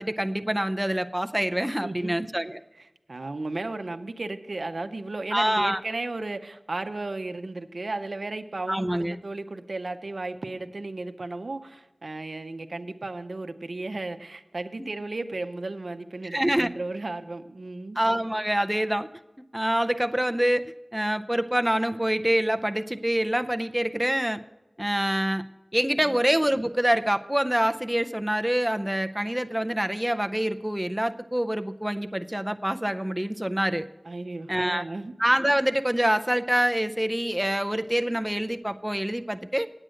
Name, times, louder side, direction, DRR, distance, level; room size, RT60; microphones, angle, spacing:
voice 1, 0.0-2.6 5.3-5.8 8.7-9.1 14.8-14.9 16.2-16.7 18.0-19.1 19.5-24.4 24.8-25.5 25.7-33.9 34.5-34.8 35.2-39.7, right 1 dB, 10° right, 7 dB, 0.5 m, -26 dB
voice 2, 1.8-2.1 2.8-18.0 26.0-26.2 34.0-35.1, right 2 dB, 90° right, 8 dB, 0.6 m, -34 dB
8.9 x 8.8 x 6.3 m, 1.1 s
wide cardioid pair, 50°, 0 cm